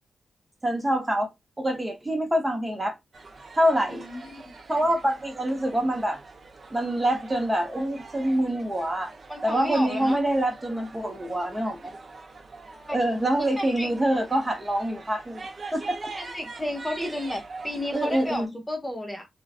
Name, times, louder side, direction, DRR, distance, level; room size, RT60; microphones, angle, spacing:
voice 1, 0.6-1.3 1.6-2.9 3.5-4.1 4.7-6.2 6.7-9.1 9.4-11.9 12.9-15.4 15.7-16.0 17.0-17.1 17.9-18.5, right 1 dB, 20° right, 0.8 m, -25 dB
sound 1, 3.1-18.5, right 3 dB, 55° right, 0.6 m, -44 dB
voice 2, 3.9-4.5 9.3-10.2 12.7-13.0 13.6-13.9 16.2-19.3, left 1 dB, 10° left, 0.7 m, -33 dB
2.4 x 2.1 x 2.3 m
cardioid pair, 60°, 0 cm